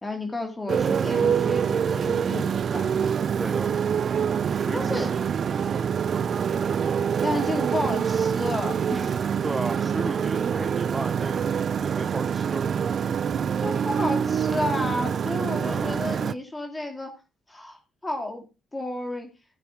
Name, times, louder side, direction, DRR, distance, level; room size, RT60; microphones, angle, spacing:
voice 1, 0.0-2.9 4.7-5.1 7.2-9.2 13.6-17.1 17.5-18.4 18.7-19.3, left 1 dB, 20° left, 3 dB, 2.3 m, -31 dB
Motorcycle, 0.7-16.3, right 7 dB, 55° right, 0.5 m, -25 dB
voice 2, 3.4-3.7 4.5-5.2 6.5-6.8 9.4-12.7 15.6-16.0, right 2 dB, 25° right, 9 dB, 0.9 m, -34 dB
14.0 x 7.4 x 3.5 m, 0.28 s
supercardioid pair, 55°, 0 cm